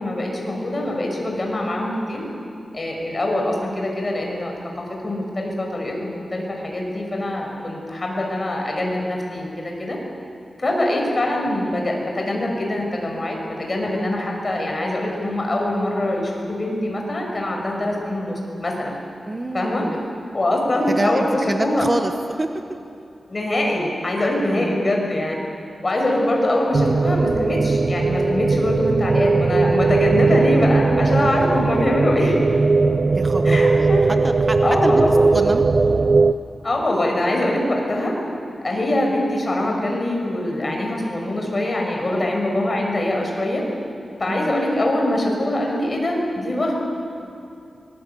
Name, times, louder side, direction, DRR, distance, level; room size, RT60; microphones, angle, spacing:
voice 1, 0.0-2.2 2.7-10.0 10.6-18.9 19.5-19.8 20.3-21.8 23.3-25.3 25.8-32.4 33.5-34.0 34.6-35.1 36.6-38.1 38.6-43.6 44.2-46.7, left 1 dB, 35° left, 0 dB, 5.8 m, -23 dB
voice 2, 19.3-20.0 20.9-22.5 24.5-24.8 33.1-33.9 34.2-35.7 44.3-44.5, right 2 dB, 25° right, 5 dB, 1.1 m, -26 dB
sound 1, 26.7-36.3, right 3 dB, 50° right, 0.6 m, -18 dB
25.0 x 20.5 x 8.3 m, 2.7 s
wide cardioid pair, 120°, 0 cm